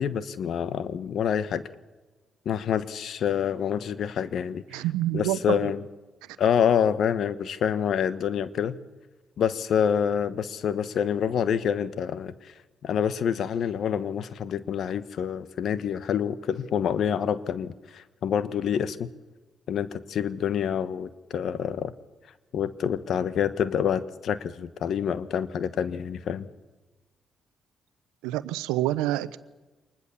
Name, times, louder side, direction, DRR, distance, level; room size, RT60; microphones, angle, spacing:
voice 1, 0.0-1.6 2.4-4.8 5.1-5.9 6.4-8.8 9.4-12.5 12.8-19.1 19.7-21.9 22.5-26.5, left 8 dB, 70° left, 15 dB, 1.2 m, -27 dB
voice 2, 4.7-5.6 28.2-29.4, right 15 dB, 90° right, 16 dB, 0.7 m, -27 dB
24.5 x 20.5 x 7.1 m, 1.2 s
supercardioid pair, 55°, 0 cm